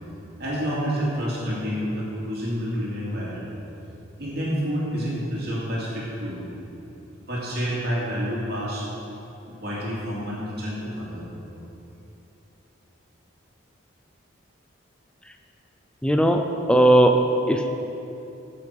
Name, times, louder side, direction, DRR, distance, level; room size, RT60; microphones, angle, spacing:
voice 1, 0.4-3.5 4.2-6.4 7.3-8.9 9.6-11.3, equal, 50° right, -7 dB, 2.7 m, -28 dB
voice 2, 16.0-17.2 17.5-17.7, right 1 dB, 5° left, 4 dB, 0.5 m, -18 dB
15.5 x 6.0 x 4.8 m, 2.9 s
head